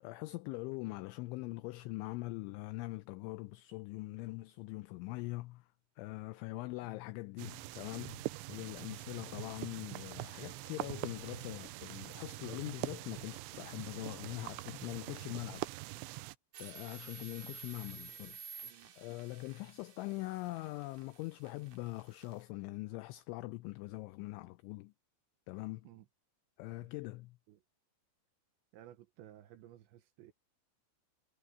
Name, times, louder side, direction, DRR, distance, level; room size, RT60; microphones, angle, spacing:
voice 1, 0.0-5.7 6.0-15.7 16.6-18.4 19.0-24.9 25.5-25.9 26.6-27.4, left 21 dB, 90° left, 2.7 m, -43 dB
sound 1, 7.4-16.4, right 20 dB, 90° right, 2.7 m, -44 dB
sound 2, 16.5-22.4, right 6 dB, 50° right, 2.5 m, -52 dB
voice 2, 18.6-18.9 25.8-26.1 26.8-26.9 27.5-27.6 28.7-30.3, right 12 dB, 75° right, 3.1 m, -57 dB
omnidirectional pair, 5.9 m